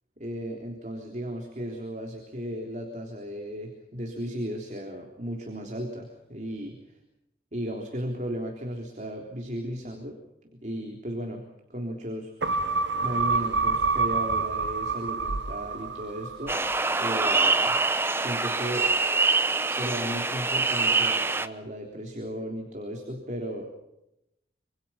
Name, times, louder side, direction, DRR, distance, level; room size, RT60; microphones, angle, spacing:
voice 1, 0.2-7.0 7.5-10.2 10.6-11.4 11.7-12.3 13.0-16.6 17.0-17.8 18.1-18.9 19.6-23.7, equal, 40° right, 2 dB, 3.6 m, -35 dB
sound 1, 12.4-17.1 17.5-17.6, right 4 dB, 80° right, 1.0 m, -28 dB
sound 2, 16.5-21.5, right 3 dB, 15° right, 0.9 m, -25 dB
26.5 x 26.0 x 5.8 m, 0.87 s
head